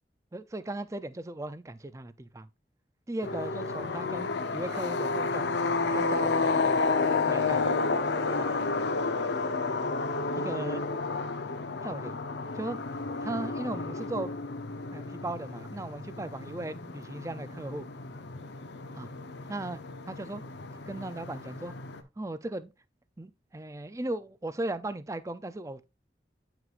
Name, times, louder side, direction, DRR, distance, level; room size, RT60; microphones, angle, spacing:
voice 1, 0.3-2.5 3.1-5.5 5.9-6.8 7.3-7.8 8.4-8.6 10.3-10.8 11.8-12.2 12.5-12.8 13.2-14.3 14.9-17.9 18.9-19.1 19.5-20.4 20.9-21.7 22.2-22.7 23.2-25.8, right 2 dB, 15° right, 0.4 m, -37 dB
sound 1, 3.2-22.0, left 3 dB, 90° left, 0.8 m, -31 dB
9.3 x 5.9 x 2.5 m
head